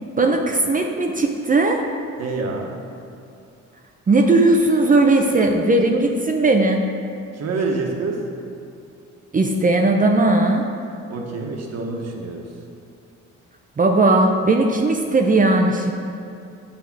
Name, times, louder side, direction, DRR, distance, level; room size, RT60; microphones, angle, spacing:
voice 1, 0.2-1.8 4.1-6.8 9.3-10.6 13.8-15.9, right 2 dB, 25° right, 2 dB, 0.7 m, -17 dB
voice 2, 2.2-2.7 7.3-8.2 11.1-12.5, right 3 dB, 55° right, 0 dB, 1.4 m, -27 dB
7.2 x 4.9 x 6.0 m, 2.5 s
cardioid pair, 90°, 30 cm